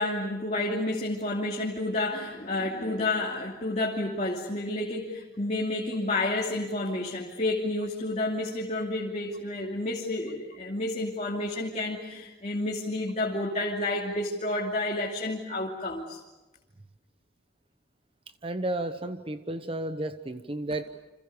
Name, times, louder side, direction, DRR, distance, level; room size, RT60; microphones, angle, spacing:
voice 1, 0.0-16.2, left 2 dB, 40° left, -2 dB, 2.7 m, -30 dB
voice 2, 18.4-20.8, right 1 dB, 30° right, 9 dB, 1.0 m, -32 dB
30.0 x 26.5 x 6.8 m, 1.1 s
head